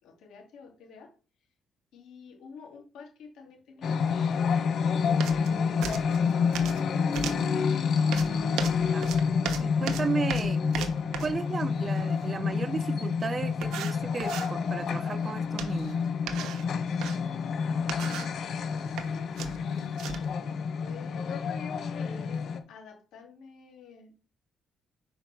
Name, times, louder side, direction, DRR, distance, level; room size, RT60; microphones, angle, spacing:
voice 1, 0.0-1.1 1.9-6.5 17.6-18.3 18.6-21.4 22.0-22.4 22.7-24.2, left 4 dB, 85° left, 2.6 m, -50 dB
sound 1, 3.8-22.6, left 6 dB, 65° left, 0.9 m, -28 dB
sound 2, 5.2-5.5 5.8-6.8 7.1-7.5 8.1-11.4 12.9-13.0 13.6-14.5 15.6-15.9 16.3-17.2 17.8-18.4 18.8-19.1 19.4-20.3, right 8 dB, 85° right, 1.0 m, -37 dB
voice 2, 8.6-9.1 9.6-10.9 11.2-16.0, right 4 dB, 35° right, 0.5 m, -34 dB
5.2 x 4.6 x 6.0 m
cardioid pair, 90°, 0 cm